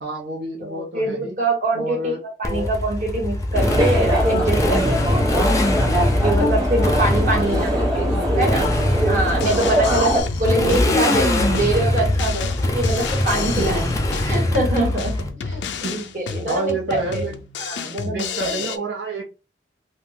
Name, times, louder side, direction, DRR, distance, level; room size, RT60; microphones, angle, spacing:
voice 1, 0.0-1.4 1.7-2.7 6.8-8.6 9.8-10.1 13.6-14.0 15.8-16.2 16.5-17.4 18.0-19.3, right 2 dB, 85° right, -1 dB, 0.7 m, -30 dB
voice 2, 0.6-2.1 2.4-5.2 6.2-8.1 8.4-8.6 9.1-13.8 14.2-17.2 17.6-18.3 18.5-18.7, right 2 dB, 45° right, -1 dB, 1.5 m, -24 dB
Motorcycle, 2.4-15.3, left 1 dB, 20° left, 0.5 m, -22 dB
sound 1, 3.5-10.2, equal, 20° right, 1.2 m, -22 dB
Drum kit, 9.3-18.8, left 5 dB, 85° left, 0.4 m, -30 dB
2.6 x 2.2 x 3.5 m, 0.30 s
head